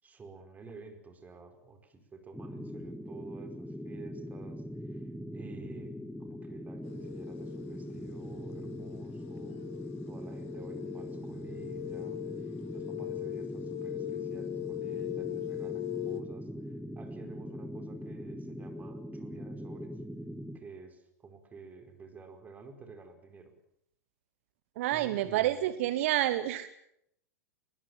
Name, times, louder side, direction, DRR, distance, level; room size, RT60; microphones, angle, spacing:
voice 1, 0.0-9.7 10.0-20.0 20.5-23.5 24.9-25.7, right 4 dB, 20° right, 6 dB, 4.9 m, -51 dB
sound 1, 2.3-20.6, equal, ahead, 1.5 m, -42 dB
sound 2, 6.8-16.2, left 14 dB, 55° left, 2.1 m, -40 dB
voice 2, 24.8-26.7, right 14 dB, 55° right, 14 dB, 1.2 m, -28 dB
23.0 x 20.5 x 7.4 m, 0.74 s
figure-of-eight pair, 95°, 8 cm